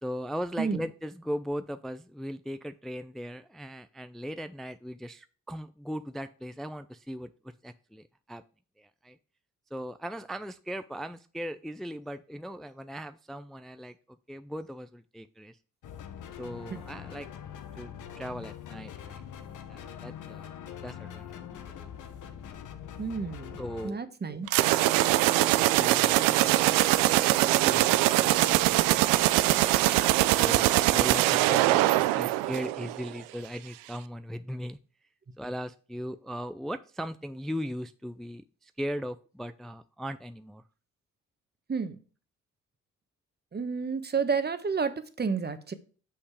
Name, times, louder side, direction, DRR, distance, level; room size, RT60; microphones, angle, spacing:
voice 1, 0.0-8.4 8.8-9.2 9.7-14.0 14.3-15.6 16.4-17.3 17.8-19.2 19.7-20.5 20.8-21.9 23.6-24.0 30.4-34.8 35.4-40.6, equal, ahead, 11 dB, 0.4 m, -38 dB
sound 1, 15.8-23.9, left 9 dB, 70° left, 1.1 m, -43 dB
voice 2, 23.0-23.6 23.8-24.5 41.7-42.0 43.5-45.7, right 5 dB, 30° right, 11 dB, 1.2 m, -30 dB
sound 2, 24.5-33.1, right 17 dB, 85° right, 0.5 m, -23 dB
6.4 x 5.7 x 4.9 m, 0.39 s
supercardioid pair, 60°, 33 cm